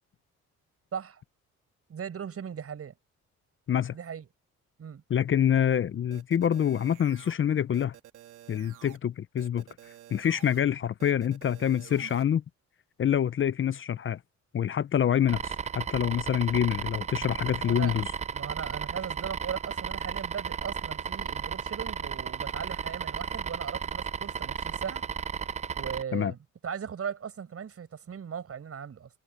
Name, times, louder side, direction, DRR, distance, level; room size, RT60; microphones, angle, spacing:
voice 1, 0.9-1.2 1.9-2.9 3.9-4.3 4.8-5.0 17.6-17.9 18.3-25.0 25.7-29.1, right 7 dB, 50° right, 6.1 m, -38 dB
voice 2, 5.1-7.9 8.5-9.6 10.1-12.4 13.0-14.2 14.5-18.1 26.1-26.3, left 9 dB, 45° left, 0.7 m, -26 dB
sound 1, 6.1-7.3 7.7-9.0 9.4-10.6 11.0-12.2, right 13 dB, 85° right, 3.0 m, -50 dB
sound 2, 15.3-26.0, right 6 dB, 25° right, 0.4 m, -34 dB
cardioid pair, 90°, 30 cm